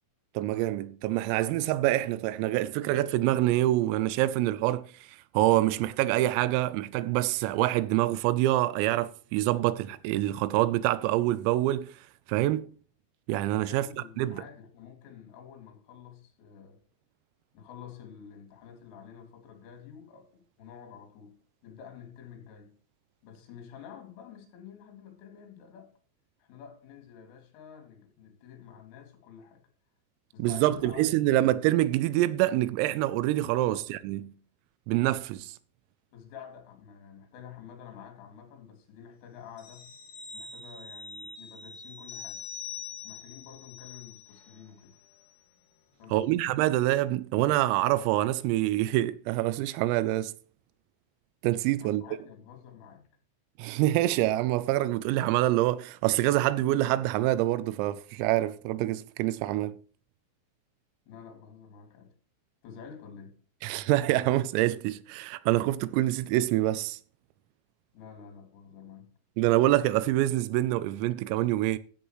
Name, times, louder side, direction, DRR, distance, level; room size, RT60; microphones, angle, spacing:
voice 1, 0.4-12.0 12.3-12.7 13.3-13.9 14.2-14.4 30.4-34.3 34.9-35.6 46.1-50.3 51.4-52.0 53.6-59.8 63.6-67.0 69.4-71.8, right 15 dB, 90° right, 3.3 m, -26 dB
voice 2, 13.7-16.8 17.5-22.8 23.2-25.9 26.4-29.6 30.3-31.4 33.6-33.9 36.1-39.9 40.3-42.5 43.0-45.0 46.0-46.5 51.8-53.1 61.1-62.1 62.6-63.4 67.9-69.2, left 7 dB, 75° left, 4.8 m, -49 dB
sound 1, 39.6-44.7 45.0-45.2, left 6 dB, 55° left, 3.2 m, -44 dB
16.0 x 8.6 x 3.1 m
omnidirectional pair, 6.0 m